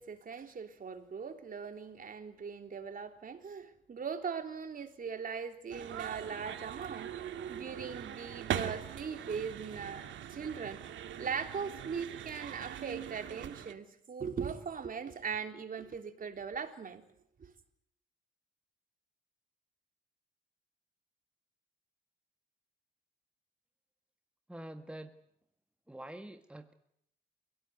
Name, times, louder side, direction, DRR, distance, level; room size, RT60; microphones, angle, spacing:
voice 1, 0.0-10.8 11.2-17.0 17.4-17.5, right 6 dB, 45° right, 3.7 m, -40 dB
sound 1, 5.7-13.7, right 10 dB, 70° right, 2.0 m, -41 dB
voice 2, 24.5-25.2 25.9-26.7, right 1 dB, 5° right, 1.5 m, -46 dB
29.5 x 17.5 x 9.5 m
cardioid pair, 90°, 20 cm